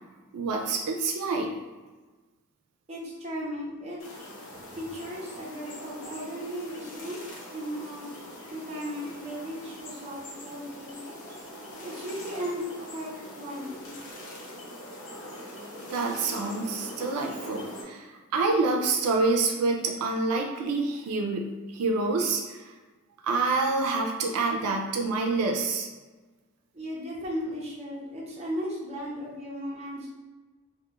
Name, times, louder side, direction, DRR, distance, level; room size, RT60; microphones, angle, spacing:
voice 1, 0.3-1.5 15.9-22.6 23.2-25.9, right 3 dB, 85° right, 2 dB, 0.3 m, -27 dB
voice 2, 2.9-4.0 4.8-8.1 8.5-11.2 11.8-13.8 26.7-30.1, equal, 30° right, -4 dB, 0.5 m, -36 dB
sound 1, 4.0-17.8, left 1 dB, 75° left, 0.7 m, -43 dB
2.3 x 2.1 x 2.8 m, 1.3 s
head